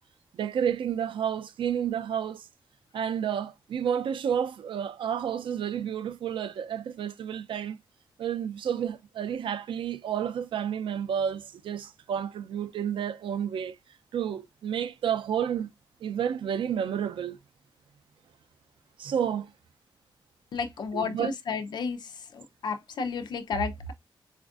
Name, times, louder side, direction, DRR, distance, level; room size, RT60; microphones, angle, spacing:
voice 1, 0.3-2.5 2.9-7.8 8.2-13.8 14.1-15.7 16.0-17.4 19.0-19.5 20.9-21.3, right 8 dB, 80° right, 0.4 m, -30 dB
voice 2, 20.5-23.9, left 4 dB, 60° left, 0.5 m, -32 dB
4.2 x 2.4 x 2.3 m
wide cardioid pair, 175°, 9 cm